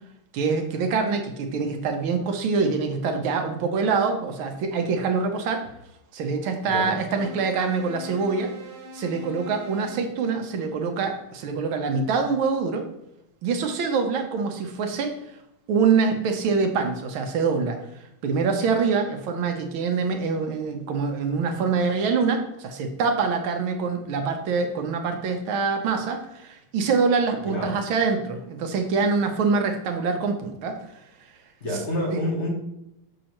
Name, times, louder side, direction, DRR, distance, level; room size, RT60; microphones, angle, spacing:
voice 1, 0.3-5.7 6.1-8.5 8.9-12.8 13.4-15.1 15.7-17.8 18.2-30.8 32.1-32.2, right 5 dB, 70° right, 4 dB, 1.6 m, -25 dB
voice 2, 6.6-7.0 27.4-27.8 31.6-32.5, left 1 dB, 35° left, -1 dB, 1.5 m, -28 dB
sound 1, 7.2-10.1, left 1 dB, 55° right, 1.4 m, -40 dB
6.4 x 6.0 x 3.0 m, 0.83 s
omnidirectional pair, 2.4 m